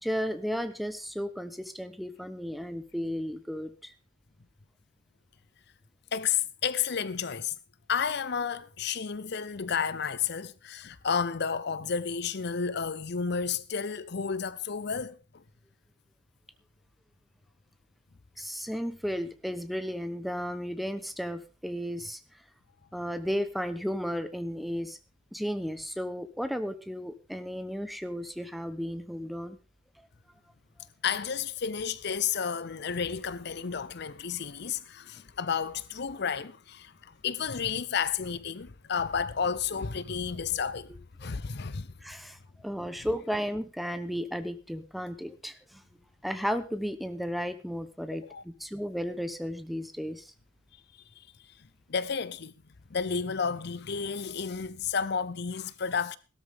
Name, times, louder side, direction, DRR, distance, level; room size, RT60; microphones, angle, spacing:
voice 1, 0.0-3.9 18.4-22.2 22.9-25.0 25.3-29.6 42.0-45.8 46.2-50.3, equal, ahead, 1.0 m, -34 dB
voice 2, 6.1-7.6 7.9-15.4 31.0-40.9 41.2-41.9 48.1-48.4 51.9-52.5 52.9-56.2, left 6 dB, 55° left, 0.7 m, -31 dB
17.0 x 13.0 x 3.6 m
head